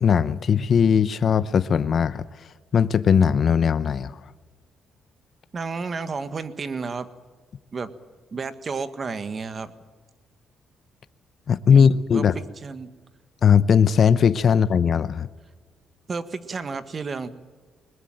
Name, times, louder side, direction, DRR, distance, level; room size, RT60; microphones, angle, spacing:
voice 1, 0.0-2.5 2.7-4.3 11.5-12.4 13.4-15.3, left 7 dB, 55° left, 0.7 m, -19 dB
voice 2, 5.5-7.1 7.7-7.9 8.3-9.7 11.7-12.9 16.1-17.3, right 4 dB, 40° right, 1.7 m, -32 dB
21.5 x 20.5 x 9.0 m
cardioid pair, 90°, 0 cm